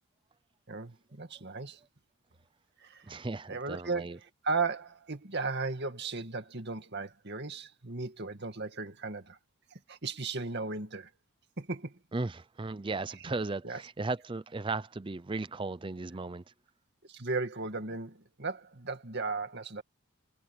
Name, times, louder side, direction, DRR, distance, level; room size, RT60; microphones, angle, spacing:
voice 1, 0.7-1.8 2.8-3.1 3.5-4.2 4.4-9.4 9.7-11.1 11.6-12.0 13.6-13.8 17.1-19.8, right 4 dB, 50° right, 2.1 m, -36 dB
voice 2, 3.1-4.2 12.1-16.4, right 3 dB, 25° right, 0.5 m, -36 dB
head